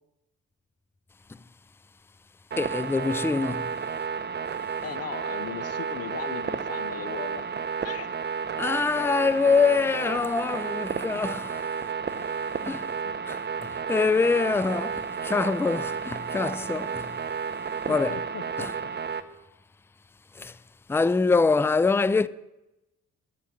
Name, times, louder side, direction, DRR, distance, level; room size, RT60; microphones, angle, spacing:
sound 1, 2.5-19.2, right 6 dB, 35° right, 0.9 m, -32 dB
voice 1, 2.6-3.7 8.6-11.7 12.6-12.9 13.3-17.1 17.9-18.2 18.6-18.7 20.4-20.6 20.9-22.3, left 4 dB, 10° left, 0.4 m, -25 dB
voice 2, 4.8-7.4 7.8-8.2 11.1-11.3 13.0-13.1 17.9-18.9, left 9 dB, 55° left, 0.8 m, -38 dB
11.0 x 7.6 x 9.1 m
cardioid pair, 90°, 30 cm